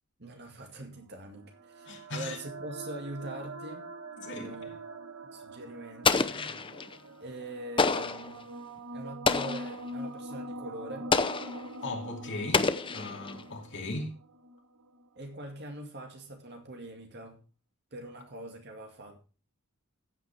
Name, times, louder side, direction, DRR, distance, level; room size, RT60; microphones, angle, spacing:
voice 1, 0.2-3.9 4.3-4.8 5.3-6.6 7.2-8.4 8.9-11.1 15.2-17.4 17.9-19.2, right 1 dB, 50° right, 2.1 m, -43 dB
sound 1, 0.9-15.1, right 1 dB, 80° right, 1.2 m, -44 dB
voice 2, 1.9-2.4 4.2-4.5 6.3-6.5 11.8-14.1, left 2 dB, 55° left, 2.7 m, -38 dB
Explosion, 6.0-7.0 7.8-8.3 9.3-9.8 11.1-11.7 12.5-13.4, left 4 dB, 25° left, 0.7 m, -27 dB
15.0 x 8.7 x 3.4 m
head